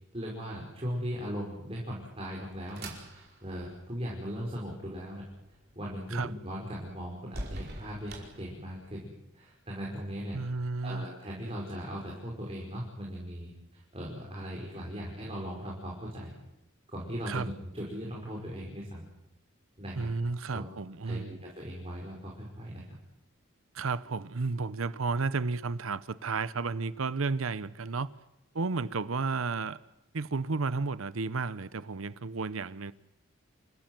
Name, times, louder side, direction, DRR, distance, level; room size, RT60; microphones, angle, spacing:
voice 1, 0.1-5.2 5.8-10.4 10.8-16.3 16.9-19.1 19.8-20.1 20.5-20.6 21.1-22.8, equal, 30° right, 5.5 m, -38 dB
sound 1, 2.3-9.1, right 1 dB, 50° right, 5.0 m, -47 dB
voice 2, 10.3-11.1 17.3-17.5 20.0-21.4 23.7-28.1 28.5-29.8 30.1-32.9, right 4 dB, 85° right, 0.8 m, -32 dB
28.0 x 15.5 x 9.2 m
head